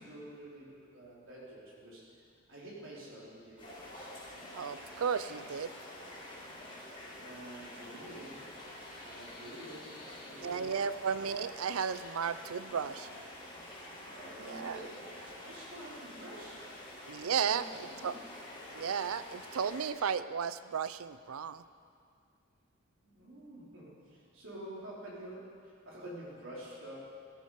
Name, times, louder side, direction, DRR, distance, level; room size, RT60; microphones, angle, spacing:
voice 1, 0.0-2.1 2.5-4.1 7.2-8.5 9.0-10.7 14.0-16.6 17.3-18.2 23.0-27.0, right 1 dB, 70° right, -6 dB, 4.0 m, -48 dB
sound 1, 3.6-19.9, left 1 dB, 25° left, 4.7 m, -48 dB
voice 2, 4.5-5.7 10.4-13.1 14.4-14.8 17.1-17.6 18.0-18.1 18.7-21.6, right 7 dB, 90° right, 14 dB, 0.5 m, -34 dB
14.5 x 13.5 x 5.0 m, 2.3 s
head